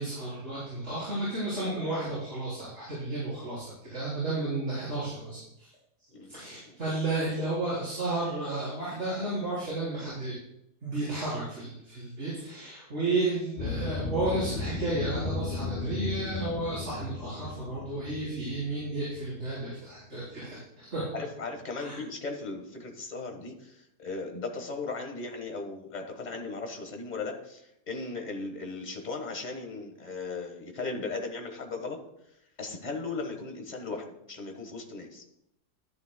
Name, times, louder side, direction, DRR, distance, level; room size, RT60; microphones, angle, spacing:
voice 1, 0.0-5.7 6.3-10.3 10.8-21.1 21.8-22.0, right 2 dB, 45° right, -9 dB, 4.4 m, -32 dB
voice 2, 6.1-6.8 21.1-32.0 32.6-35.2, left 3 dB, 30° left, 3 dB, 1.4 m, -37 dB
sound 1, 13.6-19.8, left 3 dB, 55° left, 0.5 m, -35 dB
12.5 x 11.0 x 2.2 m, 0.80 s
omnidirectional pair, 1.7 m